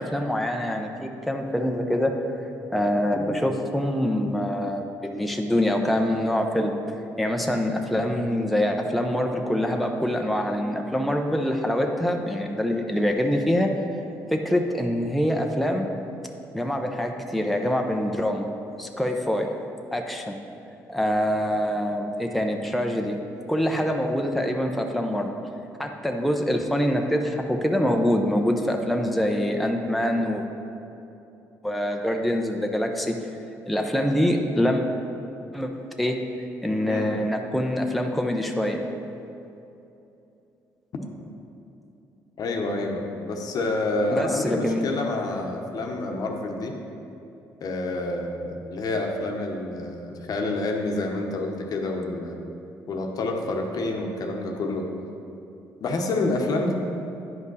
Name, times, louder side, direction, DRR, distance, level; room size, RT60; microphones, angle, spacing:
voice 1, 0.0-2.1 2.7-6.7 7.2-13.7 14.3-15.9 16.5-18.5 18.8-19.5 19.9-20.4 20.9-23.2 23.5-25.3 25.8-30.5 31.6-33.1 33.7-34.8 35.5-35.7 36.0-36.2 36.6-38.8 44.1-45.0, equal, ahead, 2 dB, 0.7 m, -25 dB
voice 2, 36.8-37.2 42.4-46.8 47.6-52.4 52.9-54.9 55.8-56.7, left 2 dB, 60° left, 3 dB, 0.9 m, -28 dB
9.6 x 5.2 x 4.0 m, 2.8 s
supercardioid pair, 75°, 7 cm